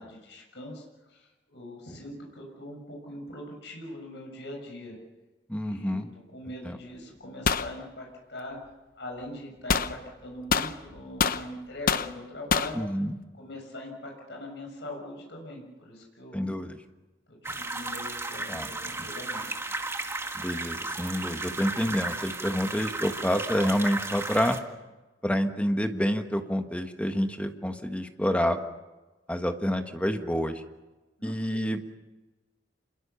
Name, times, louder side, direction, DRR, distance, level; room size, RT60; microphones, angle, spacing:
voice 1, 0.0-4.9 5.5-6.0 6.3-8.6 8.9-12.8 13.3-16.5 17.3-19.5 31.2-31.7, left 1 dB, 70° left, 1 dB, 6.8 m, -42 dB
voice 2, 5.5-6.1 6.6-6.8 12.7-13.2 16.3-16.8 18.5-18.7 20.3-24.6 25.2-28.6 29.3-30.6 31.2-31.8, equal, 5° left, 6 dB, 1.5 m, -28 dB
sound 1, 7.4-7.7 9.7-9.9 10.5-11.4 11.9-12.1 12.5-12.7, left 5 dB, 50° left, 0.9 m, -25 dB
sound 2, 17.4-24.6, right 2 dB, 15° right, 1.8 m, -34 dB
28.0 x 22.0 x 7.0 m, 1.2 s
head